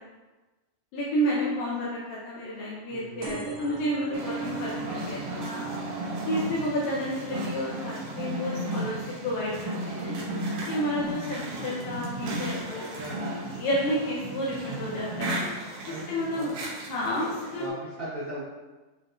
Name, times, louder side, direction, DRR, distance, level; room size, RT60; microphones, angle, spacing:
voice 1, 0.9-5.6 6.3-9.0 9.2-10.1 10.7-12.9 13.5-15.4 15.9-16.5 16.8-17.6, equal, 75° left, -6 dB, 2.5 m, -30 dB
voice 2, 2.9-3.6 12.7-13.2 15.9-16.6 17.6-18.4, right 1 dB, 50° right, -12 dB, 1.6 m, -39 dB
sound 1, 3.2-10.4 10.9-11.4 12.3-12.4 12.6-12.7 12.9-13.0, right 5 dB, 65° right, 1.6 m, -41 dB
sound 2, 4.1-17.7, right 1 dB, 85° right, 3.1 m, -35 dB
9.5 x 4.0 x 2.6 m, 1.2 s
omnidirectional pair, 4.2 m